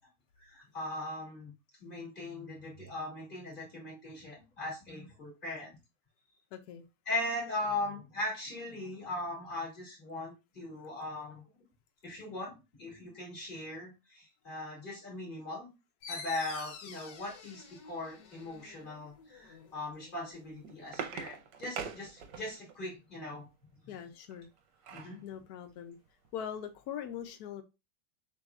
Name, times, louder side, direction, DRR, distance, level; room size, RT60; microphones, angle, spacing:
voice 1, 0.4-1.5 1.8-5.7 7.1-11.4 12.0-12.5 12.8-15.7 16.1-23.4 24.9-25.2, left 2 dB, 25° left, 2.5 m, -39 dB
voice 2, 6.5-6.9 23.9-24.5 25.2-26.0 26.3-27.6, left 9 dB, 90° left, 0.8 m, -41 dB
sound 1, 16.0-21.3, left 5 dB, 65° left, 1.4 m, -49 dB
sound 2, 20.3-22.8 24.3-25.2 25.7-25.8 26.1-26.3, right 6 dB, 65° right, 1.3 m, -42 dB
6.7 x 3.1 x 2.4 m
omnidirectional pair, 2.3 m